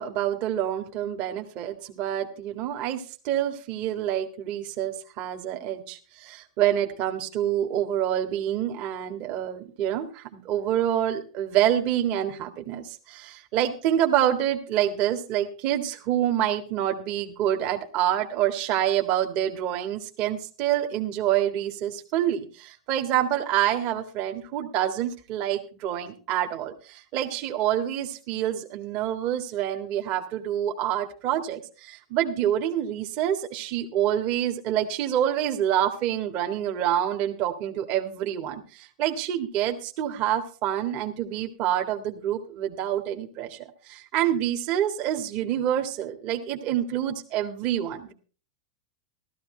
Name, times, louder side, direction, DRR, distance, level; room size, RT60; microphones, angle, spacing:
voice 1, 0.0-48.1, right 11 dB, 45° right, 4 dB, 1.8 m, -27 dB
15.0 x 13.5 x 3.3 m, 0.37 s
supercardioid pair, 145°, 3 cm